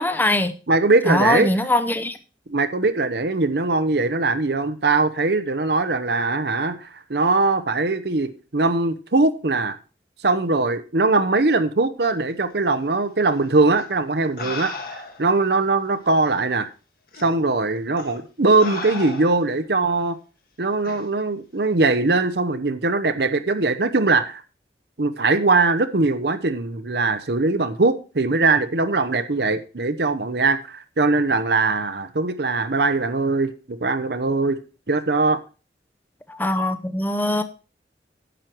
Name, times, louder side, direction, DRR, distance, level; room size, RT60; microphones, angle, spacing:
voice 1, 0.0-0.5 1.1-2.2 36.3-37.4, left 1 dB, 10° left, 0.7 m, -21 dB
voice 2, 0.7-1.5 2.5-9.8 10.2-14.7 15.2-16.7 17.2-20.2 20.6-24.4 25.0-34.6 34.9-35.4, right 3 dB, 65° right, 0.8 m, -21 dB
sound 1, 13.7-13.8 14.4-15.3 16.2-16.3 17.1-17.3 18.0-18.2 18.6-19.6 20.8-21.0, left 3 dB, 55° left, 1.6 m, -34 dB
10.0 x 7.5 x 4.5 m
head